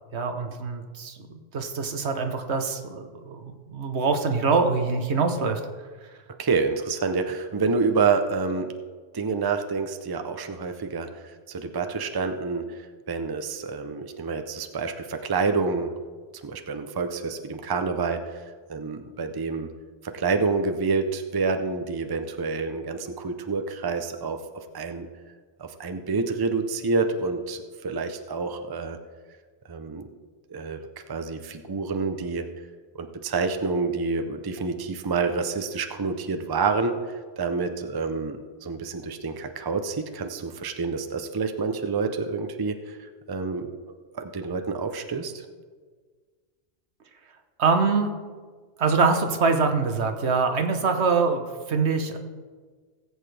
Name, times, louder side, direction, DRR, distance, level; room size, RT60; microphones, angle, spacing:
voice 1, 0.1-5.6 47.6-48.2 48.8-52.2, right 4 dB, 75° right, 6 dB, 1.3 m, -24 dB
voice 2, 6.4-8.7 9.1-15.9 16.4-18.3 18.7-19.7 20.0-25.1 25.6-29.0 29.7-30.1 30.5-30.8 31.1-32.5 32.9-43.7 44.1-45.4, right 4 dB, 25° right, 6 dB, 0.6 m, -28 dB
18.5 x 8.2 x 3.4 m, 1.5 s
omnidirectional pair, 1.1 m